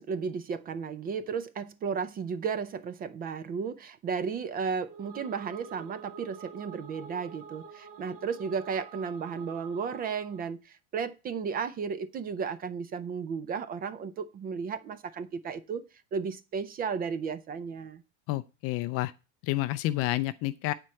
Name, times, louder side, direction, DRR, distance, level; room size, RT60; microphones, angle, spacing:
voice 1, 0.0-18.0, right 6 dB, 25° right, 0.5 m, -34 dB
sound 1, 4.7-10.5, right 5 dB, 45° right, 2.8 m, -48 dB
voice 2, 18.3-19.1 19.4-20.7, left 16 dB, 40° left, 0.4 m, -29 dB
9.3 x 4.5 x 7.5 m
supercardioid pair, 145°, 41 cm